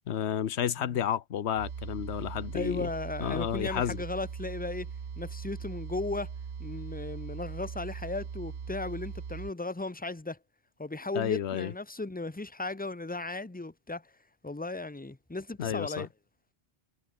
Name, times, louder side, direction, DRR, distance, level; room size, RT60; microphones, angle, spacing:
voice 1, 0.1-2.9 3.2-4.0 11.1-11.7 15.6-16.1, left 9 dB, 80° left, 1.2 m, -31 dB
sound 1, 1.5-9.5, right 6 dB, 70° right, 1.5 m, -40 dB
voice 2, 2.5-4.9 5.2-6.3 6.6-10.4 10.8-14.1 14.4-16.1, left 2 dB, 10° left, 0.8 m, -36 dB
omnidirectional pair, 1.1 m